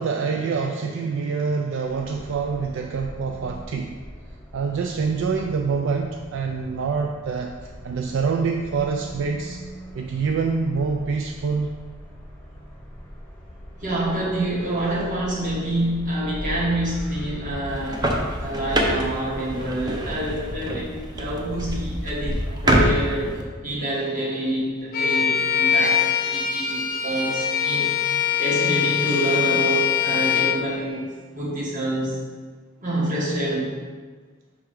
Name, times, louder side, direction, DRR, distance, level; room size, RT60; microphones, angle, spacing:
voice 1, 0.0-4.0 4.5-9.6 9.9-11.7, right 5 dB, 65° right, 3 dB, 0.4 m, -26 dB
sound 1, 1.9-21.2, equal, 5° left, 0.9 m, -39 dB
voice 2, 13.8-18.0 18.4-31.1 31.3-32.2 32.8-33.7, right 1 dB, 40° right, -5 dB, 1.5 m, -27 dB
sound 2, 17.7-23.4, right 1 dB, 20° right, 0.6 m, -25 dB
Bowed string instrument, 24.9-30.6, left 8 dB, 45° left, 0.5 m, -23 dB
5.6 x 3.6 x 4.9 m, 1.5 s
head